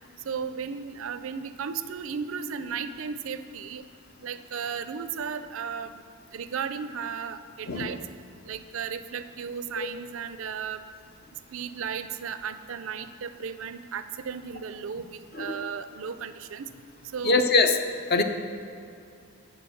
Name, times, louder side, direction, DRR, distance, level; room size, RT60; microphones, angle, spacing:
voice 1, 0.2-3.8 4.2-5.9 6.3-8.0 8.4-10.8 11.5-16.7 17.1-17.4 18.1-18.2, right 6 dB, 65° right, 11 dB, 0.4 m, -35 dB
voice 2, 17.2-17.8 18.1-18.2, left 3 dB, 45° left, 7 dB, 0.6 m, -22 dB
11.5 x 4.7 x 7.1 m, 2.5 s
head